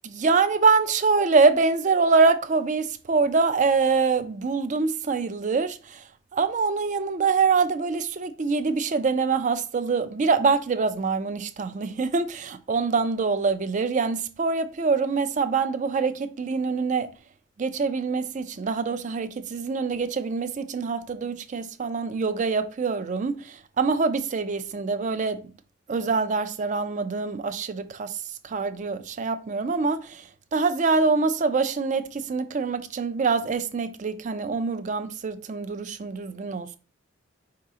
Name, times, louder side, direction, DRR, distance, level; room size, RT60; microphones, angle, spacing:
voice 1, 0.0-6.0 6.3-17.1 17.6-25.4 25.9-36.8, right 4 dB, 40° right, 0.4 m, -24 dB
4.8 x 2.9 x 3.6 m
head